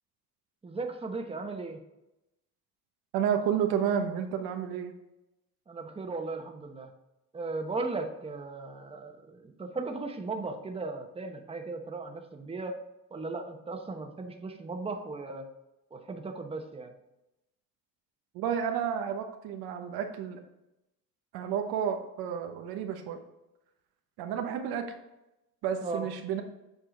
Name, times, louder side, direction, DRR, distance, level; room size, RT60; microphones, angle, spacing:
voice 1, 0.6-1.8 5.7-6.9 7.3-12.8 13.1-15.4 15.9-16.9 25.8-26.1, right 3 dB, 15° right, 4 dB, 1.0 m, -37 dB
voice 2, 3.1-4.9 18.3-20.4 21.3-23.2 24.2-24.9 25.6-26.4, right 8 dB, 90° right, 5 dB, 1.1 m, -31 dB
7.8 x 4.9 x 3.8 m, 0.91 s
cardioid pair, 110°, 36 cm